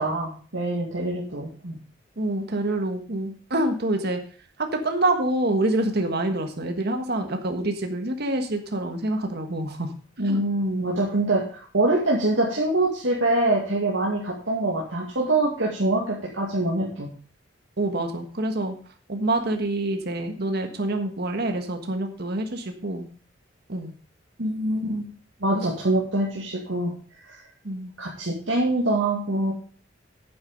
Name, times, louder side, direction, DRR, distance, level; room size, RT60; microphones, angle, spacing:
voice 1, 0.0-1.8 10.2-17.1 24.4-25.0 25.4-26.9 27.2-27.4 28.0-29.5, right 2 dB, 85° right, -4 dB, 2.3 m, -24 dB
voice 2, 2.2-4.2 4.6-9.9 10.3-10.4 17.8-18.7 19.1-23.1 23.7-23.9 27.6-27.9, right 1 dB, 60° right, 5 dB, 1.5 m, -26 dB
9.4 x 7.7 x 5.3 m, 0.41 s
head